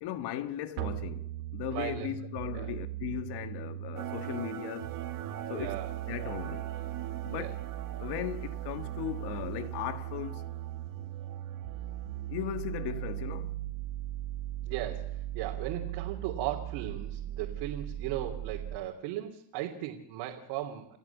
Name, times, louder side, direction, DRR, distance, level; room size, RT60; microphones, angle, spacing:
voice 1, 0.0-4.9 5.5-5.8 6.1-6.7 7.2-7.6 8.0-10.5 12.3-13.6, left 12 dB, 55° left, 1.7 m, -37 dB
sound 1, 0.8-18.8, right 13 dB, 90° right, 4.6 m, -38 dB
voice 2, 1.7-2.1 2.5-2.7 5.5-5.9 7.3-7.5 14.6-21.0, right 12 dB, 65° right, 3.2 m, -37 dB
sound 2, 4.0-13.5, right 10 dB, 40° right, 2.0 m, -44 dB
29.5 x 13.5 x 7.2 m
cardioid pair, 140°, 49 cm